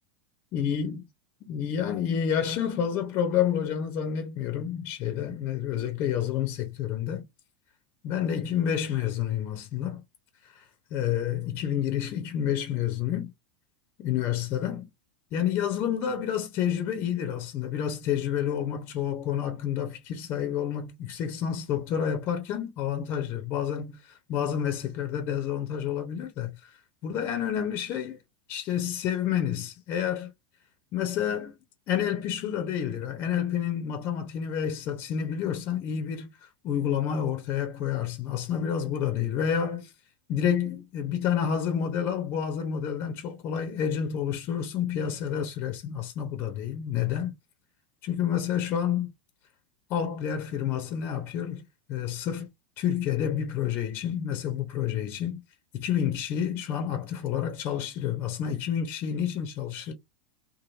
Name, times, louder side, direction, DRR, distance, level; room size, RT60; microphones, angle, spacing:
voice 1, 0.5-1.0 1.4-7.2 8.0-10.0 10.4-13.3 14.0-14.9 15.3-26.8 27.0-28.2 28.5-30.3 30.9-31.5 31.9-39.9 40.3-47.3 48.0-49.1 49.9-52.5 52.8-55.4 55.7-59.9, left 9 dB, 45° left, 0.7 m, -29 dB
3.1 x 2.5 x 2.5 m
figure-of-eight pair, 85°, 5 cm